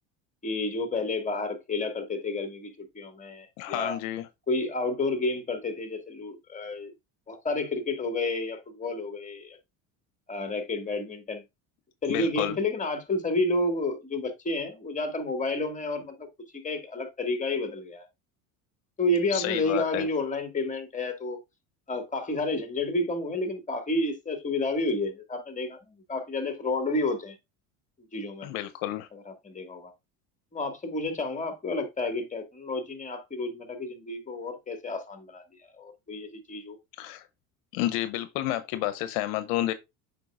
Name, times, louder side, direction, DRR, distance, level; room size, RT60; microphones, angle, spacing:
voice 1, 0.4-4.0 4.5-6.9 7.3-9.6 10.3-11.4 12.0-16.3 16.6-18.1 19.0-21.4 21.9-27.4 28.1-28.5 29.1-29.9 30.5-36.8, left 2 dB, 20° left, 1.9 m, -30 dB
voice 2, 3.6-4.2 12.1-12.5 19.3-20.1 28.4-29.1 37.0-37.2 37.7-39.7, left 14 dB, 75° left, 0.7 m, -30 dB
7.7 x 5.4 x 2.4 m
supercardioid pair, 95°, 40 cm